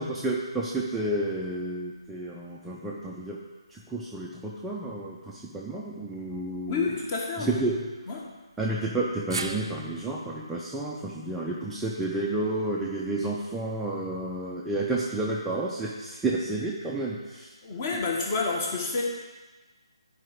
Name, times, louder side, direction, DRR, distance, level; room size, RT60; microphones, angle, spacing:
voice 1, 0.0-3.4 3.7-6.8 7.5-7.8 8.6-17.5, right 2 dB, 5° right, -5 dB, 0.5 m, -31 dB
voice 2, 6.6-7.5 8.1-8.3 17.6-19.0, left 4 dB, 30° left, 0 dB, 1.4 m, -29 dB
sound 1, 9.3-13.6 13.9-14.0 15.2-15.3, right 4 dB, 55° right, 0.5 m, -41 dB
12.0 x 4.8 x 3.6 m, 1.2 s
figure-of-eight pair, 150°, 3 cm